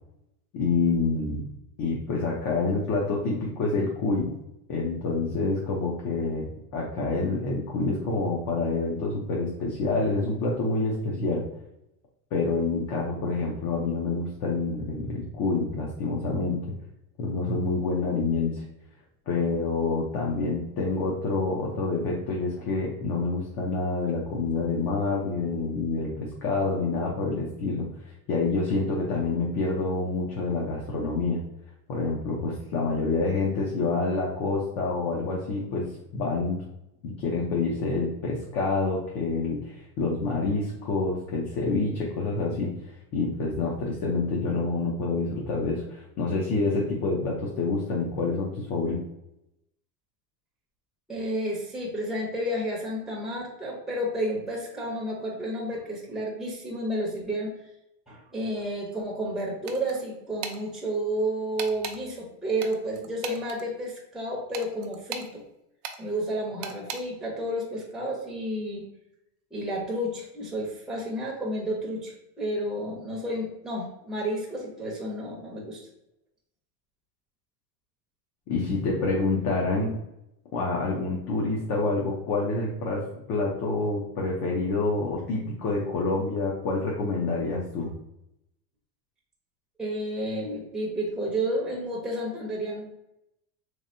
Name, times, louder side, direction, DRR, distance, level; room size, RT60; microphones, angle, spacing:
voice 1, 0.5-1.4 1.8-4.3 4.7-11.4 12.3-16.6 17.2-18.6 19.3-27.9 28.3-31.4 31.9-36.6 37.0-42.8 43.1-49.0 78.5-79.9 80.5-87.9, left 3 dB, 45° left, -2 dB, 0.8 m, -27 dB
voice 2, 51.1-57.5 58.1-65.4 66.0-68.8 69.5-75.9 89.8-92.9, right 1 dB, ahead, -3 dB, 0.7 m, -31 dB
sound 1, 59.7-60.0 60.4-60.6 61.6-62.0 62.6-63.6 64.5-65.3 65.8-66.0 66.6-67.0, right 7 dB, 40° right, 0.5 m, -36 dB
3.3 x 3.2 x 2.7 m, 0.85 s
supercardioid pair, 135°, 46 cm